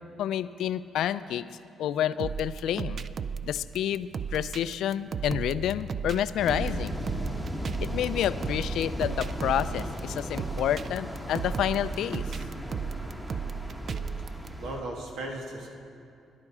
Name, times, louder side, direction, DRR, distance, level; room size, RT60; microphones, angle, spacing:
voice 1, 0.2-1.5 1.8-3.0 3.4-7.0 7.8-12.2, left 10 dB, 80° left, 15 dB, 0.3 m, -29 dB
sound 1, 2.2-14.5, right 6 dB, 50° right, 0.4 m, -35 dB
sound 2, 6.4-14.8, equal, 10° right, 1.3 m, -36 dB
voice 2, 13.7-14.3 14.6-15.7, right 1 dB, 85° right, 0 dB, 1.8 m, -38 dB
13.5 x 10.5 x 4.8 m, 2.6 s
cardioid pair, 90°, 0 cm